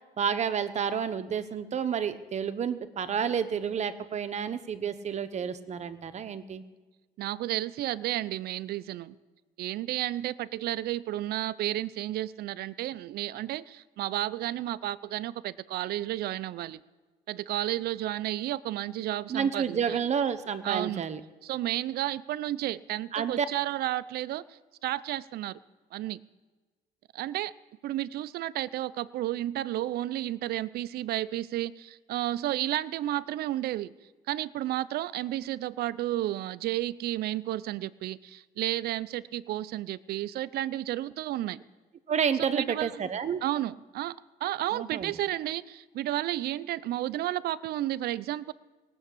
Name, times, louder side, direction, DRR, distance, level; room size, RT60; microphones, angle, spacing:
voice 1, 0.2-6.6 19.3-21.2 23.1-23.5 42.1-43.4 44.7-45.1, right 7 dB, 45° right, 11 dB, 1.0 m, -30 dB
voice 2, 7.2-9.1 9.6-16.8 17.3-20.0 20.6-21.1 21.4-25.6 25.9-26.2 27.1-27.5 27.8-33.9 34.3-41.6 42.4-42.9 43.4-44.2 44.4-48.5, right 14 dB, 70° right, 17 dB, 0.6 m, -32 dB
18.5 x 7.1 x 8.4 m, 1.3 s
cardioid pair, 110°, 17 cm